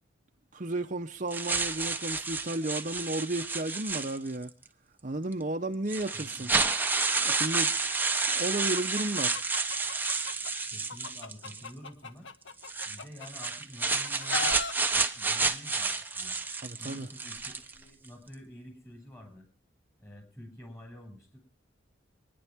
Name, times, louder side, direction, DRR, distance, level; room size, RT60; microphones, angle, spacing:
voice 1, 0.5-4.5 5.0-6.5 7.2-7.7 8.3-9.4 16.6-17.1, right 2 dB, 40° right, 0.9 m, -33 dB
sound 1, 1.3-4.5 5.3-5.4 5.9-11.7 12.6-17.8, right 4 dB, 10° right, 1.0 m, -30 dB
voice 2, 6.1-6.5 10.7-12.3 12.8-14.6 15.1-16.3 16.8-19.5 20.0-21.4, equal, 15° left, 6.3 m, -48 dB
Chicken rooster, 8.8-10.5 10.9-13.5 13.9-14.7, left 4 dB, 70° left, 1.4 m, -37 dB
26.5 x 10.5 x 3.6 m
head